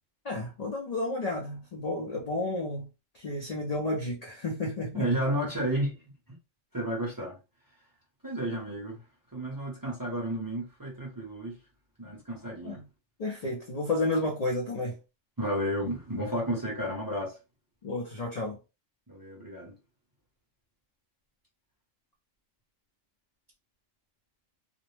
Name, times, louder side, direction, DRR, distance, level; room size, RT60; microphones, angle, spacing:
voice 1, 0.2-2.9 3.1-5.1 12.6-12.8 13.2-15.0 17.8-18.6, left 2 dB, 50° left, 0.4 m, -31 dB
voice 2, 4.9-6.0 6.7-7.4 8.2-9.0 9.3-11.6 12.0-12.8 15.4-17.4 19.1-19.7, right 1 dB, 20° right, 0.7 m, -32 dB
2.5 x 2.0 x 3.1 m
omnidirectional pair, 1.3 m